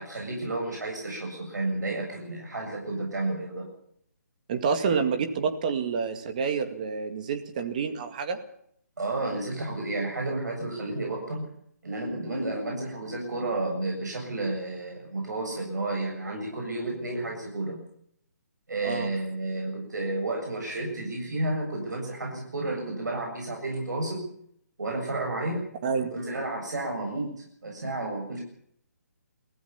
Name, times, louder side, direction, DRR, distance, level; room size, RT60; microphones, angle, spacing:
voice 1, 0.0-3.7 9.0-11.5 11.8-17.8 18.7-24.3 24.8-25.7 26.1-28.4, right 2 dB, 85° right, 0 dB, 7.8 m, -31 dB
voice 2, 4.5-8.4 18.8-19.1 25.8-26.1, right 5 dB, 25° right, 8 dB, 2.1 m, -28 dB
23.5 x 16.0 x 7.1 m, 0.68 s
hypercardioid pair, 170°, 9 cm